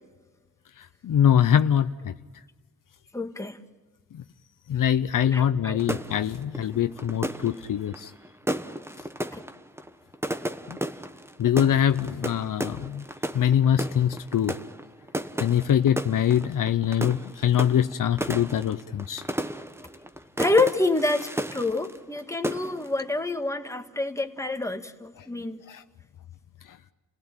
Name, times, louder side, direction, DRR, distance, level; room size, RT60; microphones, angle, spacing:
voice 1, 0.8-2.1 4.1-4.2 4.7-8.1 10.7-10.8 11.4-13.0 13.3-14.5 15.4-19.2 25.7-25.8, left 9 dB, 75° left, 10 dB, 0.7 m, -23 dB
voice 2, 3.1-3.6 5.3-5.8 9.3-9.4 20.4-25.6, left 2 dB, 10° left, 6 dB, 1.9 m, -27 dB
sound 1, 5.8-22.2 22.4-23.0, right 1 dB, 10° right, 1.2 m, -34 dB
30.0 x 17.0 x 8.9 m, 1.3 s
cardioid pair, 75°, 33 cm